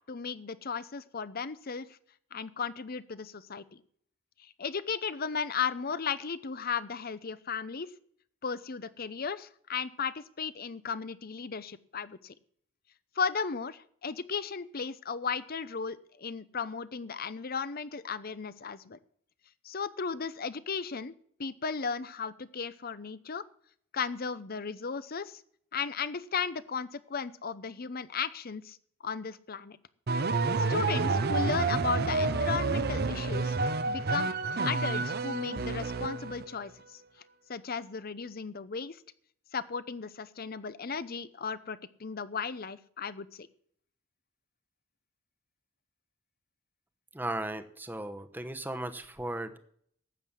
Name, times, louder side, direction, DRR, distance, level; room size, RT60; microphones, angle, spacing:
voice 1, 0.1-1.9 2.3-3.8 4.4-7.9 8.4-12.3 13.2-19.0 19.6-21.1 21.4-23.4 23.9-25.4 25.7-28.8 29.0-29.8 30.7-33.5 33.9-34.3 34.6-37.0 37.5-39.0 39.5-43.5, left 5 dB, 45° left, 15 dB, 0.7 m, -35 dB
sound 1, 30.1-36.5, right 3 dB, 50° right, 0.7 m, -29 dB
voice 2, 47.1-49.6, right 1 dB, 10° right, 8 dB, 1.0 m, -36 dB
12.5 x 8.2 x 7.4 m, 0.62 s
head